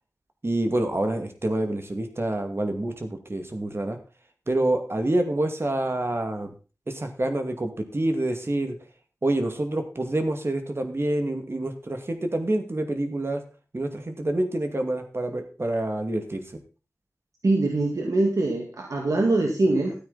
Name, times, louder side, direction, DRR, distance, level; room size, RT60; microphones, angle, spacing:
voice 1, 0.4-4.0 4.5-6.5 6.9-8.8 9.2-13.4 13.7-16.4, right 1 dB, 50° right, 6 dB, 2.3 m, -27 dB
voice 2, 17.4-19.9, right 2 dB, 85° right, 1 dB, 2.1 m, -23 dB
13.0 x 8.9 x 4.1 m, 0.34 s
wide cardioid pair, 50°, 6 cm